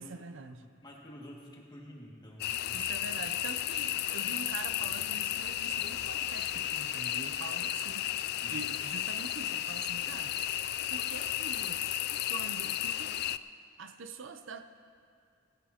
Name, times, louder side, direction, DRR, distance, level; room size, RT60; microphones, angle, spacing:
voice 1, 0.0-0.6 2.7-8.1 8.5-10.4 10.9-11.8 12.2-13.3 13.8-14.6, right 4 dB, 70° right, 9 dB, 0.6 m, -44 dB
voice 2, 0.8-2.8 8.4-8.6, equal, 20° left, -2 dB, 2.0 m, -49 dB
sound 1, 2.4-13.4, left 12 dB, 55° left, 0.3 m, -33 dB
18.5 x 15.5 x 2.9 m, 2.4 s
head